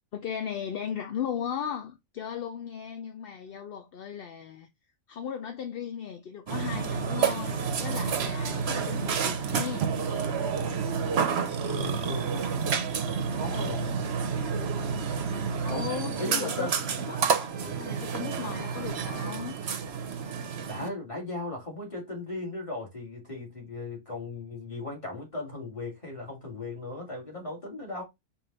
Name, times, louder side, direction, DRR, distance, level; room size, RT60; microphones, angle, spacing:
voice 1, 0.1-4.7 5.1-9.9 15.6-16.7 17.1-19.6, left 8 dB, 55° left, 0.7 m, -36 dB
Burping eructation, 6.5-20.9, right 6 dB, 55° right, 0.9 m, -29 dB
voice 2, 11.6-12.6 13.3-14.1 15.7-15.9 16.2-16.7 20.7-28.0, left 2 dB, 25° left, 1.9 m, -37 dB
5.0 x 2.5 x 3.9 m
omnidirectional pair, 1.4 m